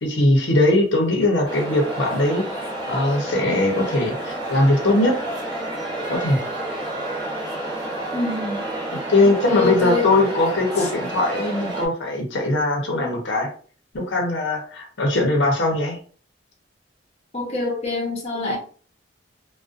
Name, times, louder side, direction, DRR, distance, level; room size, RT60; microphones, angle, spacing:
voice 1, 0.0-5.2 6.1-6.4 8.9-13.5 13.9-16.0, left 2 dB, 75° left, 0.7 m, -20 dB
sound 1, 1.5-11.9, right 1 dB, 25° right, 0.7 m, -30 dB
voice 2, 8.1-8.6 9.2-10.3 10.8-10.9 17.3-18.6, left 4 dB, 35° left, 0.7 m, -25 dB
2.5 x 2.1 x 2.4 m
head